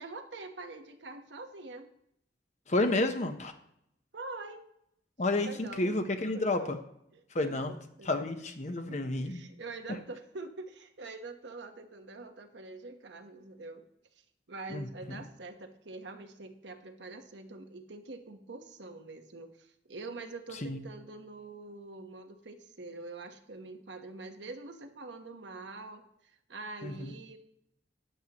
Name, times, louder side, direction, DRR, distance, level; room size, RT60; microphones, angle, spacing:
voice 1, 0.0-1.9 4.1-4.6 5.4-5.9 6.3-6.8 7.1-8.3 8.7-13.8 14.5-27.4, right 3 dB, 85° right, 5 dB, 1.1 m, -45 dB
voice 2, 2.7-3.5 5.2-6.8 7.3-7.8 8.0-9.4 14.7-15.2 20.6-20.9 26.8-27.1, left 2 dB, 40° left, 7 dB, 0.9 m, -31 dB
12.0 x 9.2 x 3.0 m, 0.76 s
head